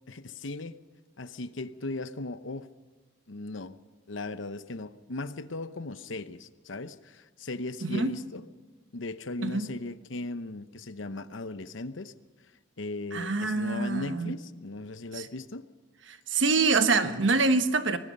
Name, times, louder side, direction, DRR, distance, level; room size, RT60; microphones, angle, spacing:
voice 1, 0.1-0.8 1.2-2.7 3.3-3.8 4.1-8.4 8.9-12.1 12.8-15.6, left 2 dB, 75° left, 12 dB, 0.9 m, -37 dB
voice 2, 7.8-8.1 9.4-9.7 13.1-14.3 15.1-15.3 16.1-18.0, right 3 dB, 70° right, 9 dB, 1.3 m, -25 dB
25.0 x 19.0 x 5.4 m, 1.3 s
head